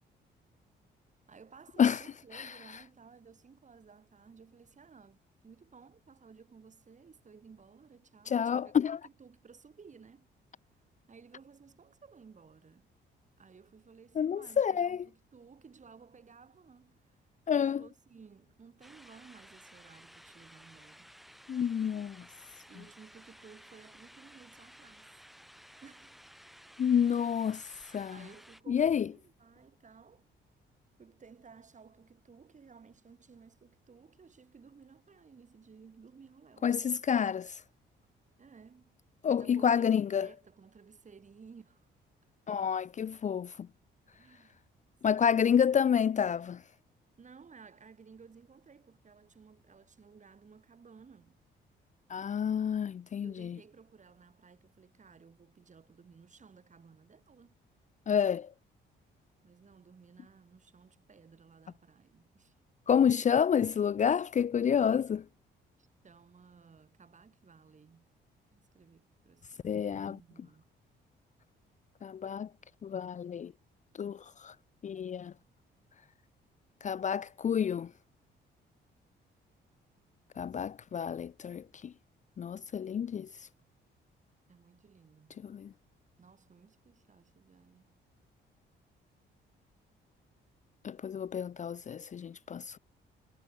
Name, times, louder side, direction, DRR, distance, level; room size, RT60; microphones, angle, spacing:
voice 1, 1.3-8.7 9.0-10.2 11.1-12.9 13.4-17.2 17.5-21.1 22.7-25.1 25.8-26.2 26.8-27.1 28.1-30.3 31.0-36.8 38.4-38.9 39.2-41.9 44.1-44.7 45.1-45.3 47.2-51.4 53.2-57.6 59.4-62.5 65.8-68.1 68.5-70.7 84.5-85.4 86.2-88.0, right 5 dB, 40° right, 4.4 m, -57 dB
voice 2, 8.3-9.0 14.2-15.0 17.5-17.8 21.5-22.2 26.8-28.2 28.7-29.1 36.6-37.6 39.2-40.3 42.5-43.7 45.0-46.6 52.1-53.6 58.1-58.5 62.9-65.2 69.6-70.2 72.0-72.5 72.8-73.5 74.0-74.5 74.8-75.3 76.8-77.9 80.4-81.9 82.4-83.3 85.4-85.7 90.8-92.8, left 8 dB, 40° left, 0.5 m, -29 dB
sound 1, 18.8-28.6, equal, ahead, 7.0 m, -56 dB
cardioid pair, 90°, 20 cm